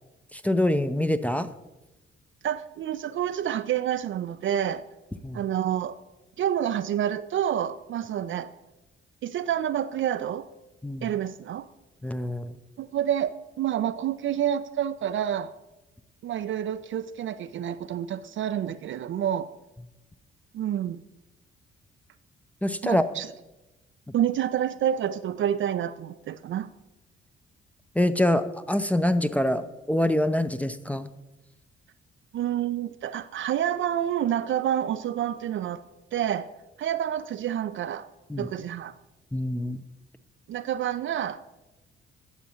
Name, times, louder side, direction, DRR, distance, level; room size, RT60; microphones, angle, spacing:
voice 1, 0.3-1.5 5.2-5.4 10.8-11.1 12.0-12.6 22.6-23.1 27.9-31.1 38.3-38.5 39.3-39.8, left 1 dB, 5° left, 9 dB, 0.6 m, -25 dB
voice 2, 2.4-4.8 5.3-6.0 6.4-8.5 9.2-10.5 11.0-11.7 12.8-15.5 16.2-19.5 20.5-21.0 22.8-23.3 24.1-26.7 32.3-35.8 36.1-36.5 36.8-38.1 38.4-38.9 40.5-41.4, right 10 dB, 40° right, 12 dB, 0.4 m, -28 dB
18.5 x 7.0 x 2.9 m, 1.0 s
figure-of-eight pair, 40°, 30 cm